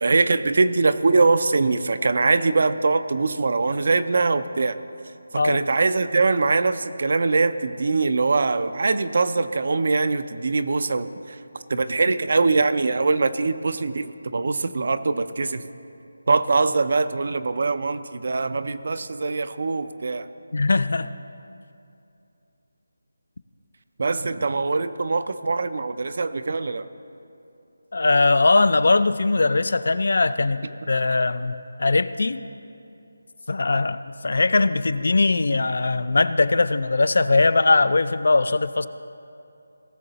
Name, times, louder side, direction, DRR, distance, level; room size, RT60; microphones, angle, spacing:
voice 1, 0.0-4.8 5.3-11.4 11.7-15.6 16.3-20.3 24.0-26.8, right 3 dB, 45° right, 13 dB, 0.5 m, -22 dB
voice 2, 20.5-21.2 27.9-32.5 33.5-38.9, left 3 dB, 55° left, 14 dB, 0.4 m, -20 dB
18.0 x 6.6 x 4.0 m, 2.6 s
figure-of-eight pair, 175°, 0 cm